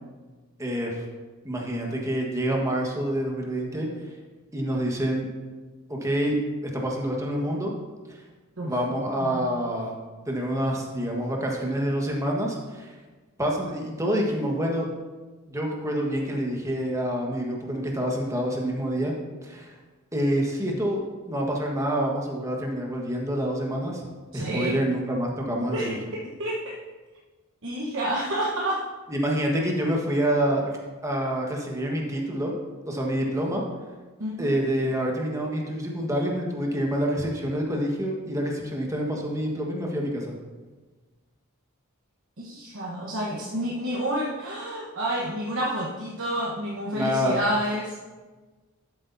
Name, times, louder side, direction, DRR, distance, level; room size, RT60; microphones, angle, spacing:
voice 1, 0.6-1.0 1.4-3.9 4.5-5.3 5.9-7.7 8.1-8.2 8.6-10.0 10.3-12.9 13.4-14.9 15.5-19.1 19.4-19.7 20.1-24.0 24.3-26.0 29.1-30.7 31.0-32.5 32.9-33.6 34.4-40.3 46.9-47.4, equal, 15° right, 0 dB, 1.4 m, -27 dB
voice 2, 24.3-24.8 25.7-26.8 27.6-28.9 34.2-34.5 42.4-48.0, right 1 dB, 65° right, -4 dB, 1.1 m, -29 dB
12.0 x 8.3 x 2.7 m, 1.3 s
head